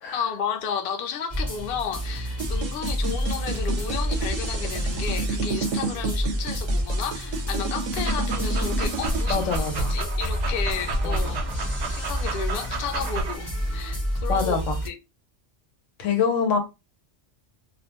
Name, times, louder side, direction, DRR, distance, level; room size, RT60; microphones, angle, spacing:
voice 1, 0.1-11.4 11.9-14.6 14.8-15.0, left 7 dB, 60° left, 0.6 m, -33 dB
sound 1, 1.3-14.9, equal, 15° left, 0.6 m, -29 dB
sound 2, 2.4-9.2, right 4 dB, 85° right, 0.9 m, -31 dB
Dog, 7.9-13.4, right 2 dB, 65° right, 0.4 m, -31 dB
voice 2, 9.3-10.0 11.0-11.4 14.3-14.8 16.0-16.6, left 5 dB, 80° left, 1.1 m, -25 dB
2.4 x 2.1 x 2.8 m
omnidirectional pair, 1.3 m